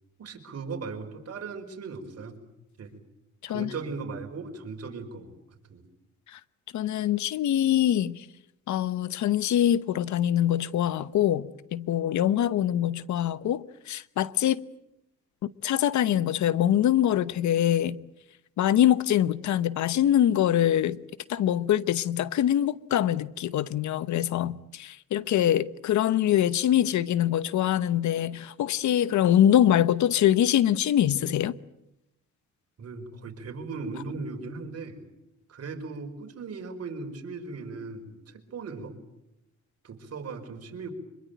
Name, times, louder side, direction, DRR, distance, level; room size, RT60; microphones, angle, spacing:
voice 1, 0.2-2.4 2.8-2.9 3.5-5.4 5.7-5.8 32.8-35.0 35.5-38.9 39.8-40.9, right 4 dB, 55° right, 5.1 m, -38 dB
voice 2, 6.7-8.2 8.7-14.6 15.4-18.0 18.6-21.0 21.3-31.5, left 11 dB, 70° left, 1.0 m, -24 dB
25.5 x 22.5 x 9.2 m
cardioid pair, 90°, 30 cm